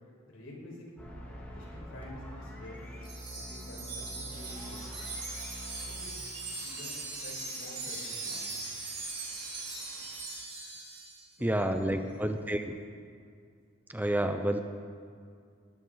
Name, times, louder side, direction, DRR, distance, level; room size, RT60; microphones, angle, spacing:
voice 1, 0.3-0.9 1.5-2.9 3.5-4.9 5.8-6.1 6.6-8.5 11.4-12.4, left 1 dB, 85° left, -3 dB, 5.3 m, -48 dB
sound 1, 1.0-6.0, equal, 10° left, 2.9 m, -45 dB
Wind chime, 3.0-11.2, right 3 dB, 30° right, 5.1 m, -40 dB
sound 2, 4.3-10.2, right 3 dB, 70° right, 3.5 m, -53 dB
voice 2, 11.4-12.7 13.9-14.6, right 1 dB, 10° right, 7 dB, 0.6 m, -29 dB
21.0 x 15.0 x 4.0 m, 2.3 s
head